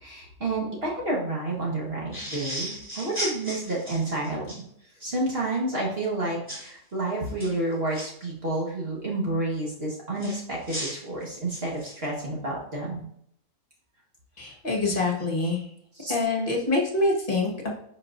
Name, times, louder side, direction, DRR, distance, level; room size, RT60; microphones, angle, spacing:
voice 1, 0.0-4.5 5.0-13.0 16.0-16.1, right 2 dB, 45° right, -4 dB, 1.7 m, -30 dB
sound 1, 2.1-4.6 6.5-6.7 7.3-8.0 10.2-12.1, equal, 10° right, 2.9 m, -35 dB
voice 2, 14.4-15.6 16.1-17.7, left 2 dB, 35° left, -1 dB, 1.6 m, -25 dB
10.5 x 4.6 x 2.6 m, 0.69 s
omnidirectional pair, 1.5 m